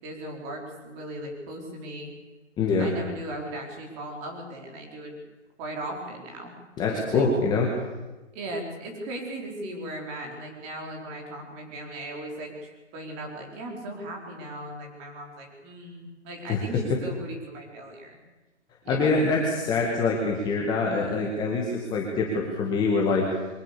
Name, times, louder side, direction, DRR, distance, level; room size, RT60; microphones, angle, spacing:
voice 1, 0.0-2.1 2.8-5.2 5.6-6.5 6.9-7.3 8.3-18.2 18.9-19.3, right 1 dB, 20° right, 1 dB, 4.7 m, -37 dB
voice 2, 2.6-2.9 6.8-7.7 16.5-16.6 18.9-23.3, left 3 dB, 10° left, -1 dB, 1.9 m, -24 dB
23.0 x 18.5 x 6.9 m, 1.1 s
hypercardioid pair, 155°, 36 cm